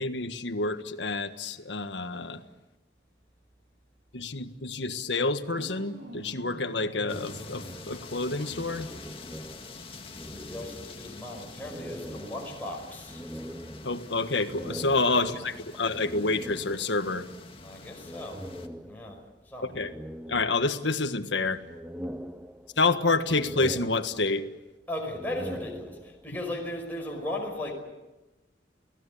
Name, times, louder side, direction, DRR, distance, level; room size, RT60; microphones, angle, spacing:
voice 1, 0.0-2.4 4.1-8.9 13.8-17.3 19.6-19.9 20.3-21.6 22.8-24.4, left 3 dB, 80° left, 9 dB, 1.6 m, -28 dB
sound 1, 5.4-8.5, equal, 80° right, 3.9 m, -47 dB
sound 2, 7.0-9.8 10.1-11.2 11.6-17.1 18.0-19.3 19.7-21.0 21.4-22.9 23.3-24.6 25.0-26.4, equal, 5° right, 0.8 m, -42 dB
sound 3, 7.1-18.7, left 3 dB, 30° left, 2.1 m, -46 dB
voice 2, 10.2-13.2 15.2-15.4 17.6-18.4 18.8-19.2 19.5-19.7 24.9-27.7, left 1 dB, 10° left, -1 dB, 5.4 m, -37 dB
30.0 x 18.5 x 8.6 m, 1.0 s
head